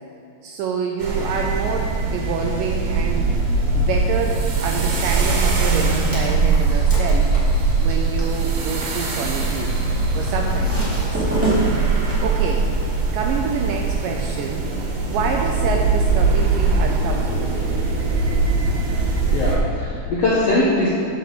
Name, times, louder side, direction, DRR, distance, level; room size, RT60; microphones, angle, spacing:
voice 1, 0.4-3.3 3.8-7.3 7.8-9.8 10.2-11.3 12.2-12.7 13.1-14.7 15.1-17.7, right 5 dB, 80° right, 2 dB, 2.0 m, -27 dB
sound 1, 1.0-19.6, right 3 dB, 60° right, 2.7 m, -21 dB
sound 2, 5.9-12.1, right 1 dB, 5° right, 1.8 m, -29 dB
voice 2, 19.0-21.0, left 2 dB, 75° left, -5 dB, 1.5 m, -21 dB
9.0 x 6.5 x 6.8 m, 2.7 s
omnidirectional pair, 4.4 m